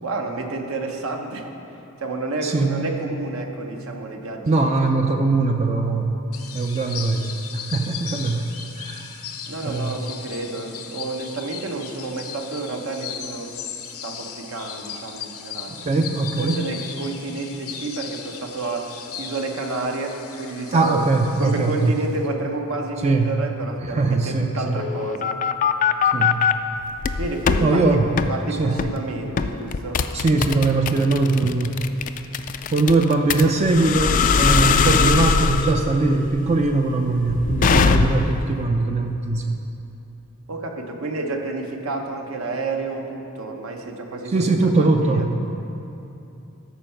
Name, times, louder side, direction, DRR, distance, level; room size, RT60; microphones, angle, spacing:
voice 1, 0.0-1.5 2.0-4.9 6.9-7.2 9.5-13.5 14.0-15.8 16.4-18.9 19.2-21.0 21.4-25.3 27.1-28.0 28.3-30.0 32.8-33.1 37.6-37.7 40.5-45.2, right 3 dB, 75° right, 3 dB, 0.9 m, -30 dB
voice 2, 2.4-2.9 4.5-6.2 6.5-8.4 8.8-9.2 9.6-10.0 15.7-16.6 20.7-22.0 23.0-23.3 23.8-24.8 26.1-26.4 27.6-28.1 28.6-28.8 30.1-31.8 32.7-39.6 44.3-45.5, right 3 dB, 30° right, 4 dB, 0.4 m, -21 dB
sound 1, 6.3-22.3, left 7 dB, 80° left, 0.8 m, -37 dB
sound 2, 24.8-26.5 27.0-27.6 28.2-28.3 28.8-29.0 29.4-38.4, left 5 dB, 40° left, 0.3 m, -21 dB
13.0 x 4.6 x 5.7 m, 2.8 s
head